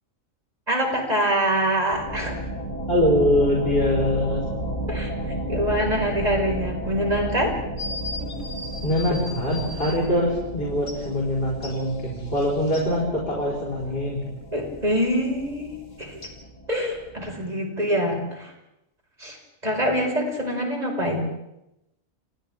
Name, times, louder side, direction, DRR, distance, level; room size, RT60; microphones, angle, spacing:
voice 1, 0.7-2.4 4.9-7.6 8.2-8.4 14.5-16.2 16.7-18.5 19.2-19.4 19.6-21.3, equal, 30° right, 0 dB, 5.6 m, -25 dB
sound 1, 1.9-17.3, right 1 dB, 25° left, 6.2 m, -33 dB
voice 2, 2.9-4.4 5.2-5.4 8.8-14.3, left 1 dB, 45° left, -4 dB, 5.4 m, -23 dB
sound 2, 7.8-10.0 10.9-11.0 11.6-12.9 16.2-16.3, left 2 dB, 90° left, 3.5 m, -37 dB
29.5 x 29.0 x 3.7 m, 0.88 s
omnidirectional pair, 1.4 m